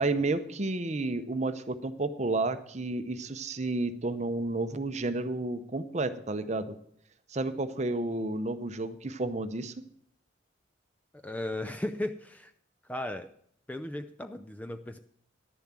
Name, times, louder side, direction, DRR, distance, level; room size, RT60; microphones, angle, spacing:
voice 1, 0.0-6.8 7.3-9.7, right 2 dB, 35° right, 11 dB, 0.7 m, -31 dB
voice 2, 11.2-12.5 12.9-13.3 13.7-15.0, left 1 dB, 5° left, 8 dB, 0.3 m, -36 dB
11.0 x 7.2 x 7.4 m, 0.66 s
head